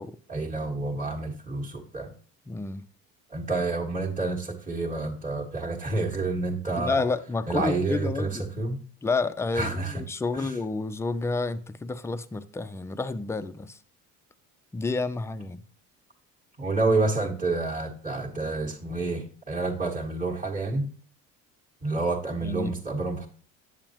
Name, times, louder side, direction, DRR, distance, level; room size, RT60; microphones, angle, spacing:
voice 1, 0.3-2.1 3.3-6.9 7.5-8.8 9.5-10.0 10.3-10.6 16.6-20.9 21.8-23.3, right 3 dB, 20° right, 1.7 m, -29 dB
voice 2, 2.5-2.8 6.8-8.5 9.0-13.8 14.7-15.6 22.4-22.7, left 3 dB, 10° left, 0.4 m, -30 dB
8.8 x 7.0 x 3.0 m
cardioid pair, 110°, 34 cm